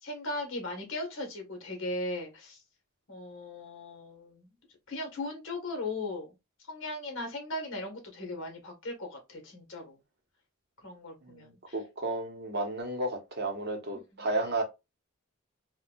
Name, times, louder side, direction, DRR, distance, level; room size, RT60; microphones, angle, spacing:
voice 1, 0.0-2.6 3.1-4.5 4.9-6.3 6.7-9.9 10.8-11.7 14.1-14.3, left 2 dB, 60° left, 1.3 m, -38 dB
voice 2, 11.2-14.6, right 2 dB, 50° right, 0.9 m, -33 dB
4.3 x 2.3 x 2.3 m
head